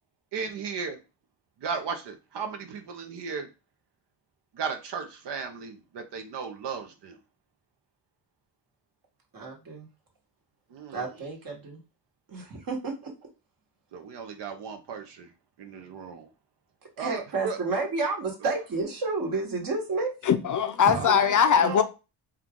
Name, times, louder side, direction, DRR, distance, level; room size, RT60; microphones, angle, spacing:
voice 1, 0.3-1.0 1.6-3.5 4.5-7.2 10.7-11.0 13.9-15.3 15.6-16.3 17.0-17.6 20.9-21.8, right 5 dB, 65° right, 0.8 m, -35 dB
voice 2, 9.3-9.9 10.9-11.8 12.3-13.1 17.0-20.1 20.8-21.0 21.6-21.8, right 3 dB, 50° right, 1.6 m, -31 dB
voice 3, 20.3-21.8, left 7 dB, 45° left, 0.5 m, -21 dB
4.4 x 2.4 x 3.7 m
cardioid pair, 100°, 44 cm